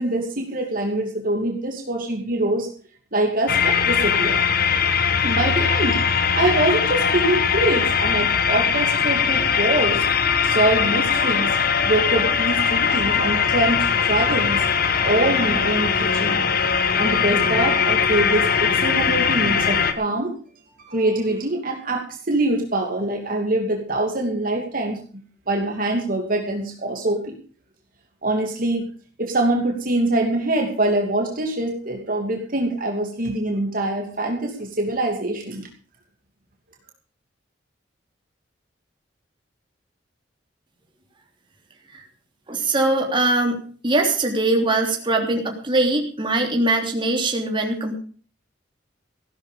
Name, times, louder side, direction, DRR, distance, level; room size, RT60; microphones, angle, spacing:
voice 1, 0.0-2.7 3.1-4.4 5.2-6.0 6.3-10.0 10.4-11.6 11.8-14.6 15.0-16.6 16.9-20.3 20.8-25.0 25.5-27.3 28.2-28.9 29.2-35.7, right 1 dB, 50° right, 2 dB, 2.7 m, -24 dB
sound 1, 3.5-19.9, left 6 dB, 55° left, 1.4 m, -20 dB
voice 2, 42.5-43.6 43.8-48.0, right 2 dB, 25° right, 2 dB, 3.3 m, -21 dB
16.0 x 12.5 x 5.1 m, 0.42 s
head